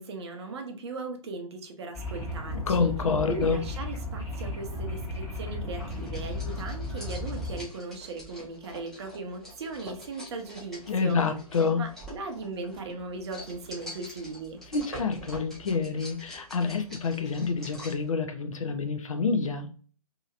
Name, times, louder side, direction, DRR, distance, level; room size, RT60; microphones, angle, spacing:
voice 1, 0.0-2.9 3.3-11.2 11.8-14.6, right 3 dB, 45° right, 4 dB, 0.7 m, -38 dB
sound 1, 1.9-7.6, left 1 dB, 20° left, 1.1 m, -35 dB
voice 2, 2.5-3.6 10.9-11.8 14.7-19.7, left 5 dB, 60° left, 6 dB, 0.6 m, -27 dB
sound 2, 5.8-18.1, equal, ahead, 0.7 m, -46 dB
2.8 x 2.7 x 2.4 m, 0.42 s
figure-of-eight pair, 130°, 19 cm